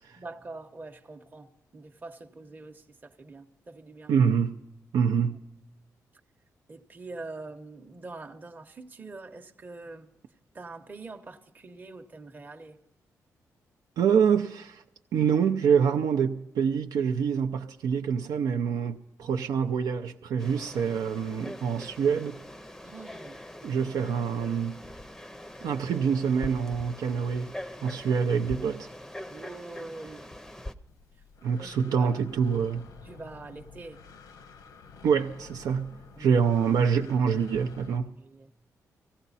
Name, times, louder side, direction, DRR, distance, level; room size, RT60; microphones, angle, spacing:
voice 1, 0.2-4.1 5.2-5.4 6.7-10.1 10.5-12.8 22.8-23.4 29.3-30.3 31.5-32.2 33.0-34.0 36.1-36.4 38.2-38.5, right 3 dB, 30° right, 0.8 m, -44 dB
voice 2, 4.1-4.6 4.9-5.4 14.0-14.8 15.1-22.4 23.6-24.8 25.6-27.5 27.8-28.9 31.4-32.9 35.0-38.1, right 7 dB, 85° right, 0.5 m, -26 dB
Frog, 20.4-30.7, left 1 dB, 5° left, 0.6 m, -43 dB
Breathing, 30.9-38.0, left 5 dB, 90° left, 1.0 m, -51 dB
18.0 x 15.5 x 4.1 m
cardioid pair, 115°, 6 cm